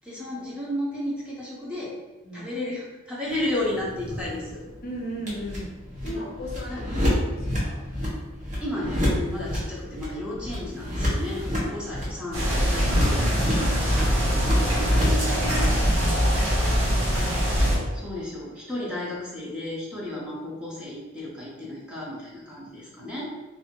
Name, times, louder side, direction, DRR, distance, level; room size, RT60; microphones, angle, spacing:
voice 1, 0.0-2.0 2.3-4.6 6.0-6.2 6.7-6.8 8.6-12.9 17.9-23.3, left 1 dB, 5° right, -6 dB, 0.9 m, -33 dB
sound 1, 3.3-15.3, equal, 35° right, 1.2 m, -29 dB
voice 2, 4.8-5.8 6.0-7.8 11.3-11.7 13.5-17.2 17.6-18.0, equal, 45° left, -3 dB, 0.8 m, -37 dB
sound 2, 12.3-17.8, equal, 80° right, 1.5 m, -23 dB
3.5 x 2.7 x 4.4 m, 1.1 s
head